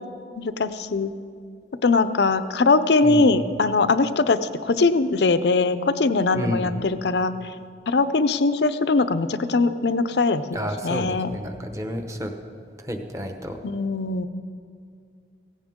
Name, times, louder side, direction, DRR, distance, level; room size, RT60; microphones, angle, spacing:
voice 1, 0.4-1.1 1.8-7.3 7.9-10.6 10.8-11.3 13.6-14.3, left 3 dB, 70° left, 12 dB, 0.6 m, -21 dB
voice 2, 3.0-3.4 6.3-6.9 10.5-12.3 12.8-13.6, equal, 15° right, 5 dB, 1.0 m, -30 dB
16.5 x 16.0 x 3.7 m, 2.3 s
head